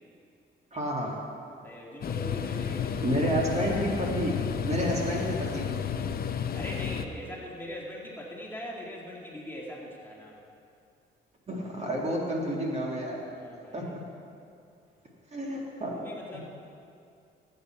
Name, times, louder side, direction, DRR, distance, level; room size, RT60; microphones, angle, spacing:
voice 1, 0.7-1.2 3.0-4.4 4.6-5.7 11.5-13.2 13.7-14.0 15.3-16.0, right 1 dB, 35° right, -2 dB, 1.9 m, -30 dB
voice 2, 1.6-3.4 6.5-10.4 13.2-14.0 15.7-16.5, equal, 10° left, -3 dB, 2.1 m, -41 dB
sound 1, 2.0-7.0, left 7 dB, 50° left, 0.7 m, -32 dB
14.5 x 8.2 x 4.4 m, 2.5 s
cardioid pair, 90°, 20 cm